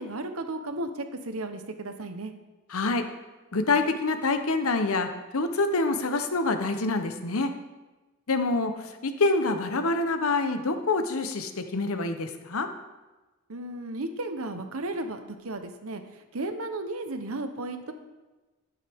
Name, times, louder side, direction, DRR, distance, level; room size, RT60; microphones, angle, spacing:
voice 1, 0.0-2.3 13.5-16.0 16.3-17.9, right 2 dB, 80° right, 7 dB, 1.0 m, -34 dB
voice 2, 2.7-3.0 3.5-7.5 8.3-12.7, left 3 dB, 80° left, 7 dB, 0.9 m, -26 dB
11.5 x 9.2 x 3.6 m, 1.2 s
head